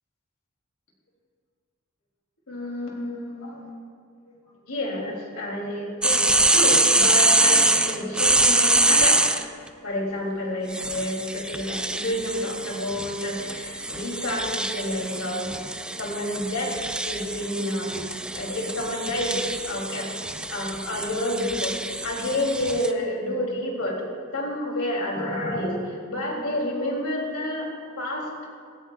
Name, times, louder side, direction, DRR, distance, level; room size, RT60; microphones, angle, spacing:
voice 1, 2.5-3.7 4.6-9.6 9.8-15.5 16.0-20.1 20.5-24.0 24.3-28.3, left 1 dB, 70° left, -1 dB, 2.8 m, -29 dB
sound 1, 6.0-9.4 10.7-22.9, right 2 dB, 5° right, 0.3 m, -24 dB
17.5 x 13.5 x 2.3 m, 2.3 s
head